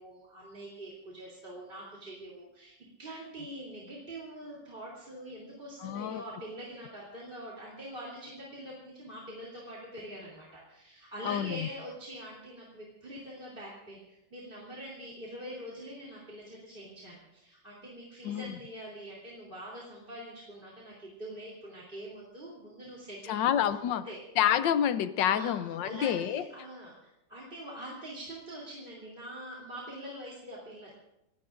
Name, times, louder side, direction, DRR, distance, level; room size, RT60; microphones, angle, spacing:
voice 1, 0.0-23.4 23.9-24.2 25.3-25.5 25.8-30.9, right 1 dB, 30° right, -5 dB, 3.4 m, -44 dB
voice 2, 5.8-6.2 11.2-11.7 18.2-18.6 23.3-24.1 24.4-26.4, left 10 dB, 85° left, 13 dB, 1.4 m, -28 dB
29.5 x 16.5 x 2.6 m, 0.84 s
omnidirectional pair, 1.9 m